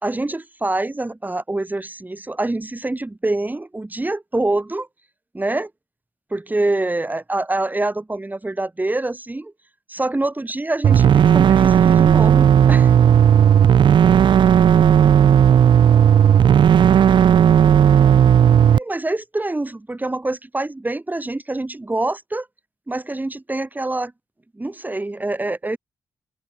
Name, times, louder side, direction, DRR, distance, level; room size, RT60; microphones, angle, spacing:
voice 1, 0.0-4.9 5.3-5.7 6.3-9.5 9.9-12.9 18.7-22.5 22.9-24.1 24.6-25.8, right 2 dB, 20° right, 3.7 m, -25 dB
sound 1, 10.8-18.8, right 9 dB, 75° right, 1.0 m, -13 dB
voice 2, 25.5-25.8, right 5 dB, 50° right, 6.9 m, -42 dB
cardioid pair, 55°, 8 cm